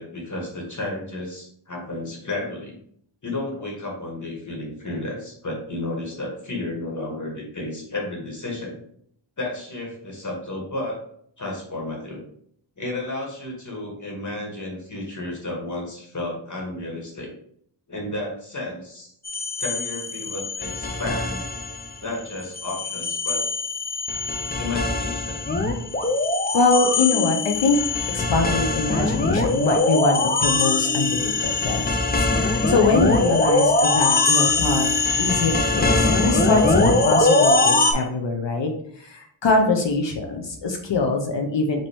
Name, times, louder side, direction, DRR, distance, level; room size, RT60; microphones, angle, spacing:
voice 1, 0.0-2.7 3.2-8.8 9.4-11.0 11.4-12.2 12.8-17.3 17.9-19.1 19.6-21.5 22.0-23.4 24.6-25.4, left 2 dB, 35° left, -1 dB, 1.7 m, -32 dB
sound 1, 19.2-22.0 22.3-37.9, left 2 dB, 20° left, 0.6 m, -22 dB
voice 2, 26.5-27.8 28.1-31.8 32.2-34.9 35.2-41.9, left 3 dB, 60° left, 2 dB, 0.8 m, -23 dB
5.2 x 2.9 x 3.5 m, 0.66 s
wide cardioid pair, 80°, 49 cm